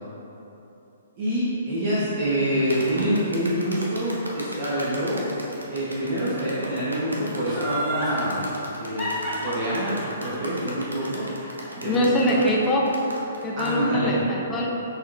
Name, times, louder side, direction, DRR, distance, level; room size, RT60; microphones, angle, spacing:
voice 1, 1.2-5.3 5.7-8.4 8.8-9.1 9.4-11.3 11.7-12.4 13.6-14.1, equal, 40° right, -10 dB, 1.0 m, -26 dB
sound 1, 2.7-13.7, equal, 85° right, 0.7 m, -38 dB
Laughter, 7.5-8.2 9.0-12.1 12.4-12.5, right 1 dB, 5° right, 1.2 m, -31 dB
voice 2, 11.8-12.8 13.4-14.7, equal, 15° left, -3 dB, 0.5 m, -23 dB
6.0 x 3.0 x 2.6 m, 3.0 s
figure-of-eight pair, 120°, 0 cm